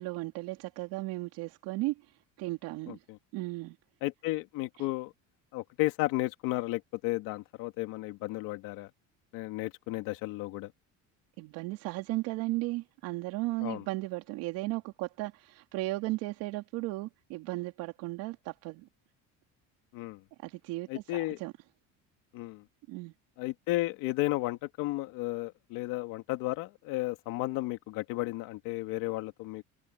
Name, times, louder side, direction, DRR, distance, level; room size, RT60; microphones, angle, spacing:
voice 1, 0.0-3.0 3.3-3.8 4.8-4.9 11.4-18.9 20.4-21.5 22.9-23.1, right 20 dB, 90° right, 3.1 m, -35 dB
voice 2, 2.9-3.2 4.0-5.1 5.5-8.9 9.3-10.7 13.6-13.8 19.9-20.2 20.9-21.4 22.3-22.6 23.4-29.6, left 19 dB, 75° left, 2.3 m, -33 dB
cardioid pair, 175°, 34 cm